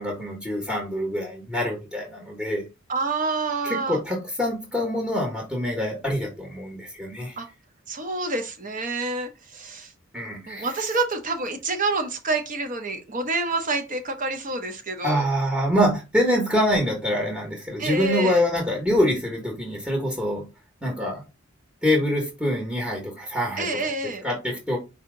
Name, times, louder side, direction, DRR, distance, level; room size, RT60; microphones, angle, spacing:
voice 1, 0.0-2.6 3.6-7.4 10.1-10.7 15.0-20.4 20.8-21.2 21.8-23.8 24.2-24.8, equal, 5° right, -1 dB, 1.0 m, -25 dB
voice 2, 2.9-4.0 7.4-7.5 7.9-9.9 10.5-15.3 17.8-18.4 23.6-24.3, right 3 dB, 40° right, 7 dB, 0.8 m, -28 dB
4.8 x 2.8 x 3.7 m, 0.28 s
head